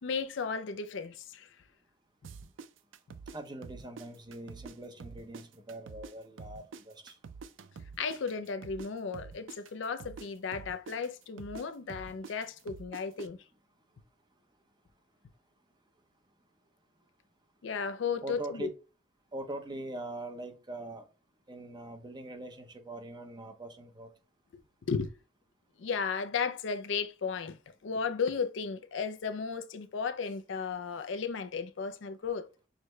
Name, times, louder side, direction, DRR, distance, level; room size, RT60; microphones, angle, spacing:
voice 1, 0.0-1.5 8.0-13.4 17.6-18.7 24.9-25.1 25.8-27.6 27.8-32.5, left 5 dB, 75° left, 0.5 m, -34 dB
sound 1, 2.2-4.7 5.0-8.9 9.1-13.3, right 5 dB, 85° right, 0.4 m, -47 dB
voice 2, 3.3-7.1 18.2-18.7 19.3-21.1 21.5-24.1, right 2 dB, 25° right, 0.7 m, -42 dB
6.3 x 2.2 x 3.2 m
head